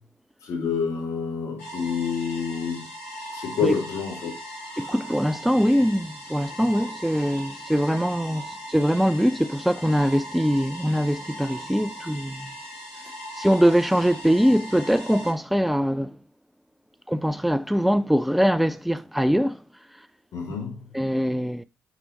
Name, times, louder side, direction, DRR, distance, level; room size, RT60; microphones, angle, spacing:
voice 1, 0.4-2.8 3.3-4.3 20.3-20.8, left 6 dB, 55° left, 2.2 m, -28 dB
sound 1, 1.6-15.3, equal, 85° left, 2.0 m, -39 dB
voice 2, 4.8-12.5 13.4-16.2 17.1-19.6 20.9-21.6, equal, ahead, 0.4 m, -22 dB
5.9 x 4.6 x 4.0 m
figure-of-eight pair, 45°, 7 cm